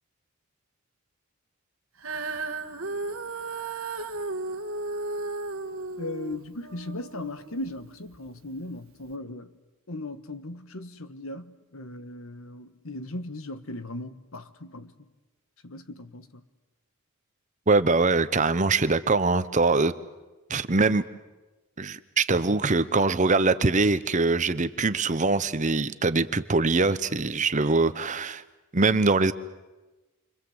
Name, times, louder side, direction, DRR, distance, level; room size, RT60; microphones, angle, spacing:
Female singing, 2.0-8.3 9.0-9.1, right 3 dB, 75° right, 1.5 m, -35 dB
voice 1, 6.0-9.5 9.9-14.9 15.6-16.4, left 2 dB, 75° left, 1.5 m, -38 dB
voice 2, 17.7-19.9 20.5-21.0 21.8-28.4 28.7-29.3, right 3 dB, 35° right, 0.9 m, -23 dB
28.5 x 25.5 x 7.9 m
head